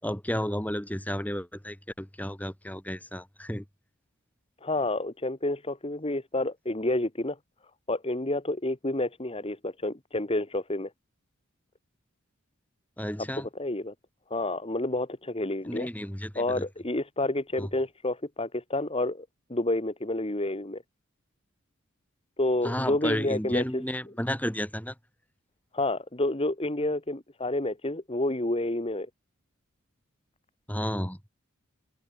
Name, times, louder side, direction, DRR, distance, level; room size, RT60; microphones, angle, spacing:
voice 1, 0.0-3.6 13.0-13.5 15.6-16.6 17.6-17.7 22.6-24.9 30.7-31.2, equal, 5° left, 3.8 m, -32 dB
voice 2, 4.6-7.4 7.9-10.9 13.5-13.9 14.3-15.9 16.3-19.2 19.5-20.8 22.4-23.8 25.7-29.1, left 2 dB, 25° left, 1.6 m, -29 dB
open air
head